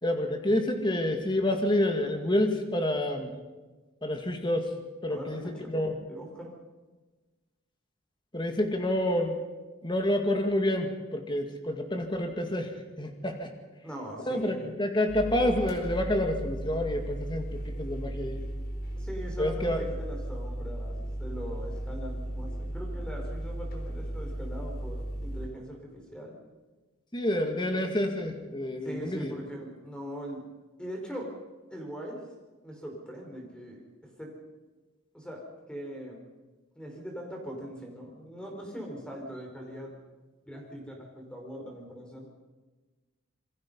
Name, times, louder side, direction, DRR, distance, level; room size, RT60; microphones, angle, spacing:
voice 1, 0.0-3.3 4.0-4.7 5.0-5.9 8.3-9.4 9.8-12.7 13.0-13.5 14.3-18.4 19.4-19.8 27.1-29.3, left 1 dB, 25° left, 4 dB, 2.2 m, -28 dB
voice 2, 5.0-6.5 13.8-14.8 19.0-26.4 28.8-30.5 30.8-31.3 31.7-32.3 32.6-34.4 35.1-36.2 36.7-39.9 40.4-42.3, equal, 5° left, 1 dB, 4.9 m, -41 dB
sound 1, 15.1-25.5, right 1 dB, 45° left, 4.3 m, -36 dB
27.5 x 22.0 x 5.6 m, 1.2 s
head